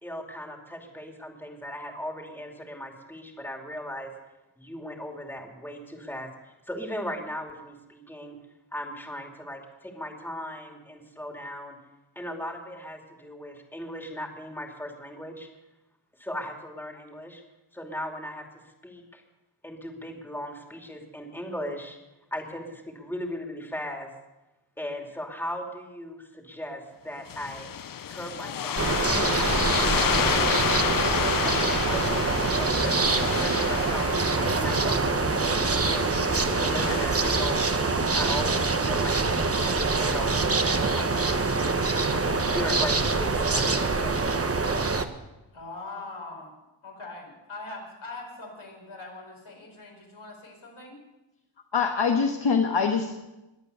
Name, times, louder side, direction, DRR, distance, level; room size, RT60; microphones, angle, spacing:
voice 1, 0.0-4.1 4.6-8.4 8.7-11.8 12.2-15.5 16.2-17.4 17.7-19.2 19.6-22.0 22.3-24.1 24.8-27.7 28.1-30.5 31.4-34.1 34.5-35.6 35.9-39.2 39.7-41.3 42.3-44.4, equal, 5° left, 2 dB, 2.6 m, -37 dB
sound 1, 27.3-37.1, left 9 dB, 45° left, 0.5 m, -30 dB
sound 2, 28.8-45.0, right 3 dB, 30° right, 1.1 m, -25 dB
voice 2, 45.5-46.5 46.8-51.0, left 3 dB, 85° left, -1 dB, 5.0 m, -42 dB
voice 3, 51.7-53.3, left 5 dB, 65° left, 3 dB, 1.4 m, -24 dB
22.0 x 8.4 x 6.8 m, 1.0 s
wide cardioid pair, 85°, 47 cm